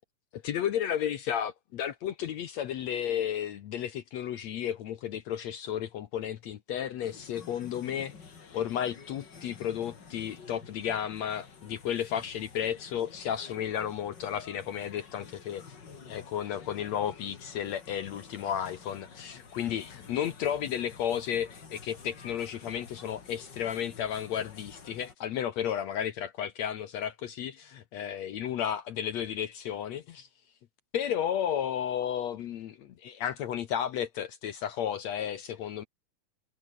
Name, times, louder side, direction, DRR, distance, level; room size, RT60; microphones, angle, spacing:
voice 1, 0.3-8.1 8.5-15.6 16.1-30.3 30.9-35.8, left 9 dB, 65° left, 2.1 m, -33 dB
sound 1, 7.0-25.1, left 5 dB, 35° left, 2.8 m, -50 dB
omnidirectional pair, 3.7 m